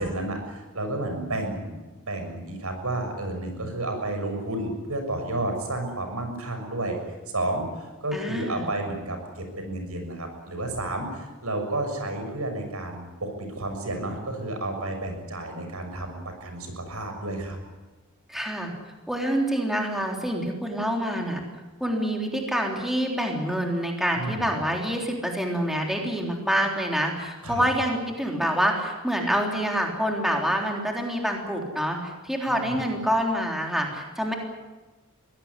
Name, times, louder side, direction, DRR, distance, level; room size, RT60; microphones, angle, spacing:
voice 1, 0.0-7.0 7.3-17.6 24.1-24.5 27.4-27.6 32.5-32.8, right 2 dB, 85° right, 5 dB, 6.6 m, -31 dB
voice 2, 8.1-8.6 18.3-18.7 19.1-21.4 21.8-34.3, equal, ahead, 1 dB, 3.6 m, -26 dB
23.0 x 18.0 x 9.8 m, 1.2 s
head